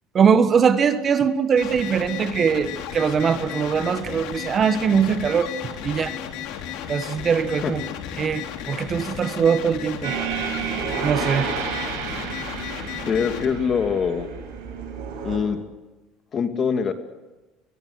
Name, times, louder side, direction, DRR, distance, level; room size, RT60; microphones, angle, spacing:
voice 1, 0.1-5.5 5.8-6.2 6.9-7.8 8.2-10.1 11.0-11.5, right 6 dB, 35° right, 11 dB, 1.4 m, -21 dB
sound 1, 1.6-13.4, left 9 dB, 75° left, 3.5 m, -34 dB
sound 2, 10.0-15.4, right 7 dB, 85° right, 7.9 m, -30 dB
voice 2, 13.1-14.3 15.2-15.6 16.3-16.9, left 6 dB, 35° left, 7 dB, 2.4 m, -23 dB
23.0 x 21.5 x 8.0 m, 1.1 s
cardioid pair, 125°, 0 cm